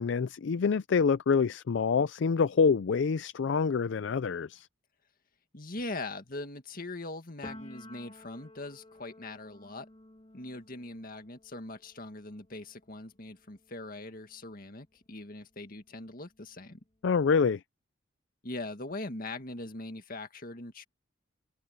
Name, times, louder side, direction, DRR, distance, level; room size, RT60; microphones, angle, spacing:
voice 1, 0.0-4.7 17.0-17.6, left 5 dB, 65° left, 0.4 m, -26 dB
voice 2, 5.5-9.9 10.3-16.8 18.4-20.8, left 2 dB, 45° left, 2.0 m, -41 dB
Piano, 7.4-15.0 15.4-16.9, left 1 dB, 30° left, 3.0 m, -53 dB
head